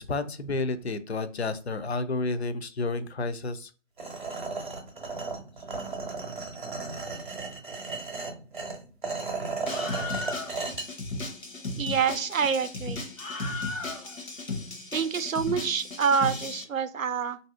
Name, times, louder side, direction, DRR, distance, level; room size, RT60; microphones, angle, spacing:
voice 1, 0.0-3.7, left 3 dB, 55° left, 11 dB, 0.5 m, -31 dB
sound 1, 4.0-10.8, right 3 dB, 40° right, 0.7 m, -35 dB
Screaming, 9.7-16.6, left 2 dB, 85° left, 1.0 m, -35 dB
voice 2, 11.8-13.0 14.9-17.4, right 6 dB, 90° right, 11 dB, 0.5 m, -27 dB
3.9 x 2.7 x 2.4 m, 0.35 s
figure-of-eight pair, 150°, 39 cm